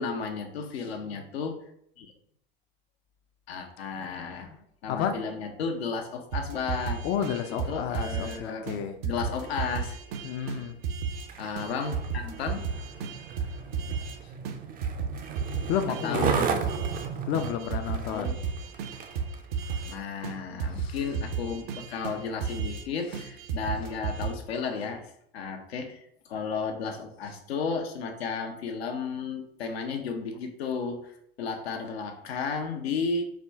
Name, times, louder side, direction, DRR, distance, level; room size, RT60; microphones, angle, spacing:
voice 1, 0.0-1.6 2.0-2.1 3.5-4.5 4.8-7.0 7.7-8.6 9.0-10.2 11.4-12.7 13.0-13.2 14.2-14.3 16.0-16.6 18.1-18.3 19.8-31.1 31.4-33.2, left 5 dB, 80° left, 4 dB, 0.7 m, -33 dB
voice 2, 4.2-5.2 7.0-9.0 10.2-10.8 15.7-16.3 17.3-18.4, left 8 dB, 45° left, 7 dB, 0.4 m, -31 dB
sound 1, 6.3-8.4 8.7-8.8 9.0-11.3 11.6-14.2 14.4-17.1 17.3-20.0 20.2-20.3 20.6-22.9 23.1-24.3, right 6 dB, 65° right, 0.6 m, -33 dB
Skateboard, 11.1-20.0 20.6-20.7, right 6 dB, 30° right, 0.5 m, -35 dB
4.8 x 2.2 x 3.4 m, 0.71 s
hypercardioid pair, 85°, 31 cm